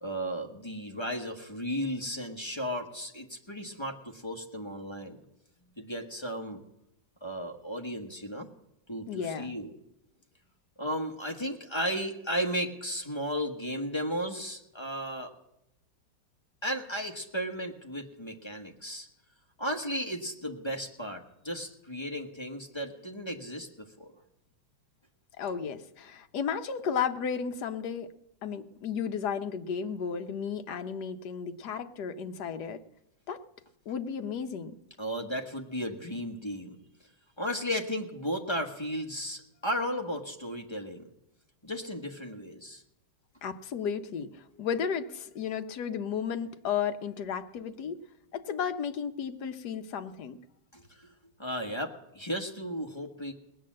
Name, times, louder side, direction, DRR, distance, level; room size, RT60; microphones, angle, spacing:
voice 1, 0.0-5.2 5.8-6.6 7.2-8.5 8.9-9.7 10.8-15.3 16.6-19.1 19.6-24.1 35.0-36.8 37.4-41.1 41.6-42.8 50.7-51.1 51.4-53.3, equal, 15° left, 2 dB, 1.2 m, -35 dB
voice 2, 9.1-9.5 25.4-28.1 28.4-32.8 33.3-33.4 33.9-34.7 43.4-48.0 48.3-50.4, left 7 dB, 65° left, 8 dB, 1.3 m, -33 dB
19.0 x 9.2 x 7.5 m, 0.83 s
omnidirectional pair, 2.0 m